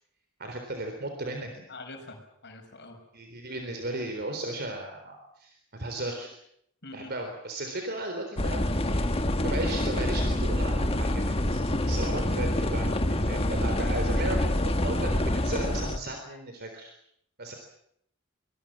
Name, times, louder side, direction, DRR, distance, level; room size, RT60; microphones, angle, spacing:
voice 1, 0.4-1.7 3.1-6.3 6.9-16.9 17.4-17.5, right 1 dB, 50° right, 4 dB, 3.8 m, -36 dB
voice 2, 1.7-3.0 6.8-7.1, left 2 dB, 55° left, 4 dB, 6.2 m, -45 dB
sound 1, 8.4-16.0, left 1 dB, 30° left, 1.6 m, -26 dB
24.5 x 21.0 x 7.6 m, 0.71 s
head